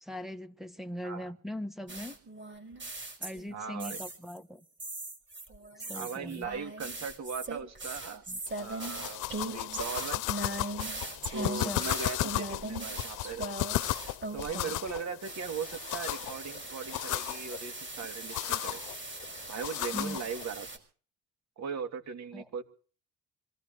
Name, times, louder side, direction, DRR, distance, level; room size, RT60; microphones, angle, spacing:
voice 1, 0.0-2.2 3.2-4.6 5.9-6.5 8.3-8.4 11.4-11.8 19.9-20.2 22.3-22.5, left 1 dB, ahead, 1.4 m, -40 dB
sound 1, 1.9-4.4 4.8-14.9 15.2-20.8, right 2 dB, 40° right, 5.7 m, -40 dB
voice 2, 3.5-4.0 5.9-8.2 8.6-10.2 11.3-13.5 14.3-18.8 19.5-20.7 21.6-22.6, right 6 dB, 60° right, 2.7 m, -39 dB
sound 2, 8.5-20.4, left 16 dB, 85° left, 0.8 m, -36 dB
26.0 x 17.0 x 3.2 m
cardioid pair, 90°, 30 cm